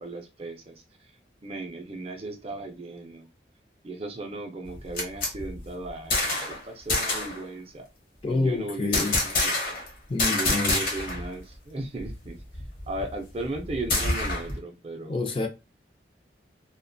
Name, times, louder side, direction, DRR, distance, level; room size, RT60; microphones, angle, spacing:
voice 1, 0.0-0.8 1.4-3.3 3.8-7.9 8.3-9.8 10.2-12.4 12.9-15.2, right 2 dB, 35° right, 0.5 m, -36 dB
sound 1, 4.7-6.6 6.9-7.4 8.9-9.9 10.2-11.3 11.5-11.6 12.0-14.6, left 2 dB, 55° left, 0.8 m, -27 dB
voice 2, 8.2-9.2 10.1-10.8 15.1-15.5, left 3 dB, 30° left, 0.4 m, -27 dB
2.4 x 2.2 x 2.5 m
head